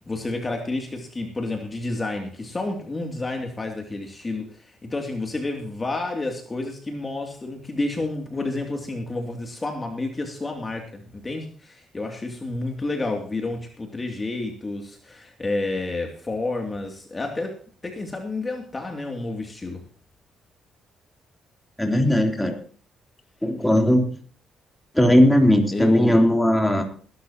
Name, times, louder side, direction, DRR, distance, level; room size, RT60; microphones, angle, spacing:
voice 1, 0.0-17.6 17.8-19.8 25.7-26.2, left 2 dB, 25° left, 2 dB, 2.7 m, -30 dB
voice 2, 21.8-22.6 23.4-24.1 24.9-26.8, left 1 dB, 5° left, 2 dB, 3.4 m, -18 dB
20.5 x 12.0 x 3.0 m, 0.42 s
cardioid pair, 90°, 0 cm